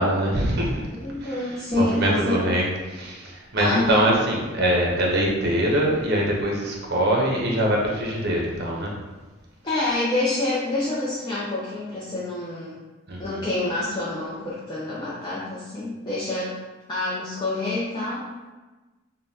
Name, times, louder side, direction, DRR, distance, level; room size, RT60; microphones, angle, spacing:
voice 1, 0.0-0.9 1.2-8.9 13.1-13.4, right 1 dB, 50° right, -2 dB, 0.8 m, -23 dB
voice 2, 0.9-2.4 3.6-4.1 9.6-12.8 13.2-16.5 16.9-18.3, left 2 dB, 20° left, -9 dB, 0.5 m, -27 dB
5.2 x 2.2 x 2.8 m, 1.2 s
head